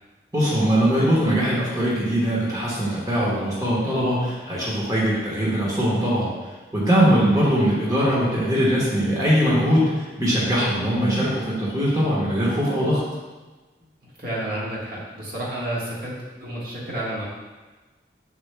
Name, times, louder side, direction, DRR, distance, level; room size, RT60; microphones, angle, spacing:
voice 1, 0.3-6.3 6.7-13.0, equal, 20° right, -7 dB, 1.2 m, -21 dB
voice 2, 14.2-16.1 16.4-17.3, right 1 dB, 55° right, -6 dB, 1.5 m, -30 dB
6.9 x 6.6 x 2.2 m, 1.2 s
head